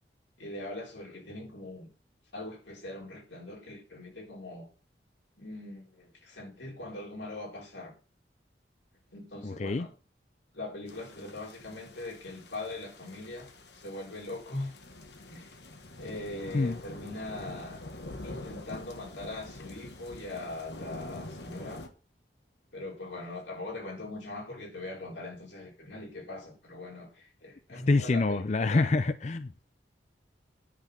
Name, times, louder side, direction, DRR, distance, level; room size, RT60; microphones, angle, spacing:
voice 1, 0.4-1.9 2.3-4.7 5.4-7.9 9.1-9.9 10.5-14.7 15.3-15.6 16.0-17.8 18.2-21.8 22.7-28.9, left 2 dB, 90° left, 4.4 m, -41 dB
voice 2, 9.4-9.9 16.5-16.8 27.9-29.6, left 3 dB, 40° left, 0.5 m, -26 dB
sound 1, 10.9-21.9, left 2 dB, 70° left, 1.6 m, -46 dB
10.5 x 6.2 x 7.1 m
head